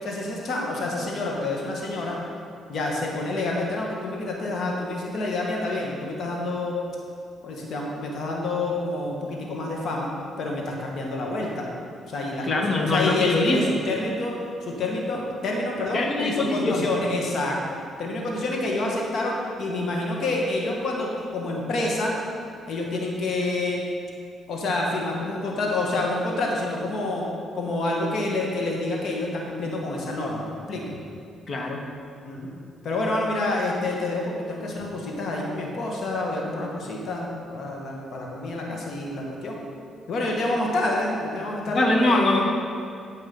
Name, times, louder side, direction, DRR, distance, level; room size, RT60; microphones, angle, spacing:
voice 1, 0.0-2.2 2.7-6.8 7.4-10.1 10.4-11.7 12.1-14.3 14.6-22.2 22.7-23.9 24.5-27.2 27.5-31.0 32.2-32.5 32.8-39.6 40.1-42.4, left 2 dB, 60° left, -1 dB, 1.8 m, -28 dB
voice 2, 12.4-13.8 15.9-16.9 31.5-31.8 41.7-42.5, left 2 dB, 45° left, 2 dB, 1.4 m, -23 dB
13.0 x 5.3 x 5.5 m, 2.3 s
cardioid pair, 90°, 0 cm